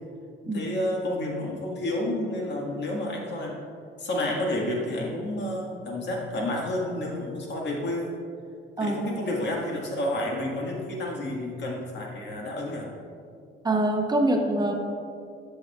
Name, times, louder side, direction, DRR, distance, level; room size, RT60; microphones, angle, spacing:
voice 1, 0.4-3.5 4.0-8.1 8.8-12.9, left 1 dB, 60° left, -2 dB, 1.7 m, -30 dB
voice 2, 13.6-14.8, right 1 dB, 20° right, 1 dB, 0.8 m, -24 dB
12.0 x 6.4 x 2.4 m, 2.4 s
cardioid pair, 90°, 20 cm